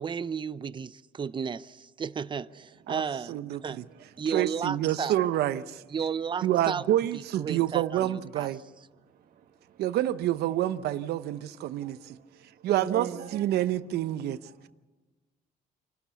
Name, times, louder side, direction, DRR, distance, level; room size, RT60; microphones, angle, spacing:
voice 1, 0.0-3.4 3.6-3.8 4.2-5.2 5.9-6.8 7.1-8.5, right 6 dB, 30° right, 0.7 m, -33 dB
voice 2, 3.3-3.8 4.3-5.8 6.4-8.6 9.8-12.2 12.6-14.4, right 13 dB, 75° right, 0.8 m, -28 dB
voice 3, 8.6-9.8 11.7-13.5 14.4-14.6, right 8 dB, 55° right, 1.7 m, -42 dB
28.0 x 13.0 x 8.3 m
cardioid pair, 110°, 17 cm